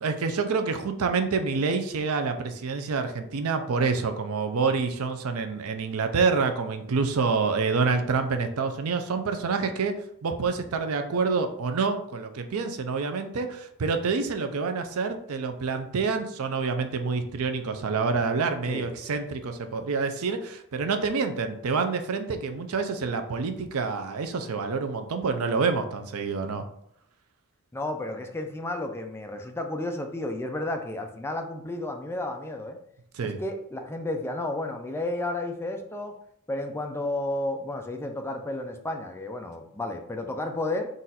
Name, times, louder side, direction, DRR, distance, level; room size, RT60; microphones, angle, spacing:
voice 1, 0.0-26.6 33.1-33.4, right 4 dB, 80° right, 7 dB, 0.5 m, -27 dB
voice 2, 27.7-32.8 33.2-36.1 36.5-40.9, left 2 dB, 10° left, 4 dB, 0.4 m, -32 dB
4.0 x 2.5 x 4.1 m, 0.72 s
head